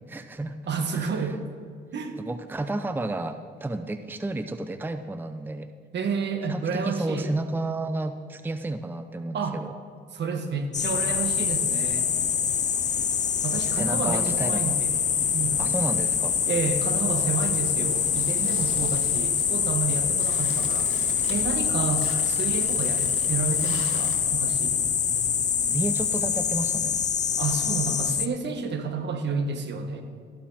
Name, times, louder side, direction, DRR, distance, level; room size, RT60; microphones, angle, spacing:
voice 1, 0.1-0.6 0.9-1.3 2.2-5.7 6.5-9.7 13.7-14.8 15.6-16.4 25.7-27.0, right 2 dB, 10° right, 9 dB, 0.6 m, -31 dB
voice 2, 0.7-1.4 1.9-2.2 5.9-7.3 9.3-9.6 10.1-12.1 13.4-15.0 15.3-15.7 16.5-20.9 21.3-24.8 27.4-30.0, right 5 dB, 60° right, 6 dB, 1.7 m, -30 dB
sound 1, 10.7-28.3, left 7 dB, 35° left, 0.6 m, -25 dB
sound 2, 16.6-24.2, left 4 dB, 65° left, 3.5 m, -43 dB
14.0 x 12.0 x 4.3 m, 2.2 s
cardioid pair, 90°, 20 cm